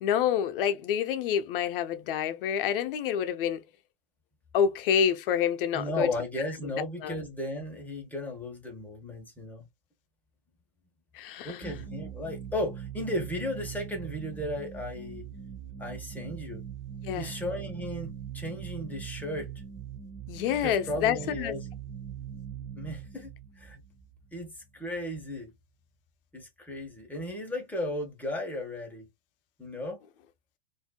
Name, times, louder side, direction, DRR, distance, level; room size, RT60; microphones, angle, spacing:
voice 1, 0.0-3.6 4.5-6.1 7.0-7.2 11.1-11.7 17.0-17.3 20.3-21.5, left 8 dB, 65° left, 0.7 m, -27 dB
voice 2, 5.7-9.6 11.4-15.3 15.8-16.6 17.2-19.5 20.6-21.7 22.7-23.8 24.3-25.5 26.3-29.1 29.6-30.0, left 1 dB, 5° left, 1.2 m, -35 dB
sound 1, 11.6-24.9, right 8 dB, 20° right, 0.7 m, -41 dB
4.2 x 2.6 x 2.2 m
supercardioid pair, 125°, 29 cm